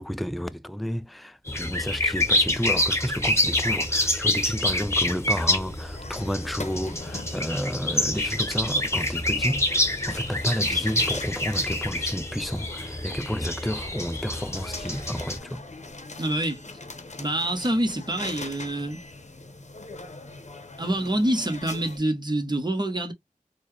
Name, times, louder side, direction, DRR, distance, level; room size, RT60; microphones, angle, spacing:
voice 1, 0.0-15.6, equal, ahead, 0.4 m, -31 dB
sound 1, 1.5-15.4, left 1 dB, 20° left, 1.0 m, -27 dB
sound 2, 5.3-22.0, left 2 dB, 55° left, 0.8 m, -42 dB
voice 2, 16.2-16.6 17.2-19.0 20.8-23.1, right 1 dB, 30° right, 1.1 m, -26 dB
4.2 x 2.3 x 3.1 m
wide cardioid pair, 40°, 14 cm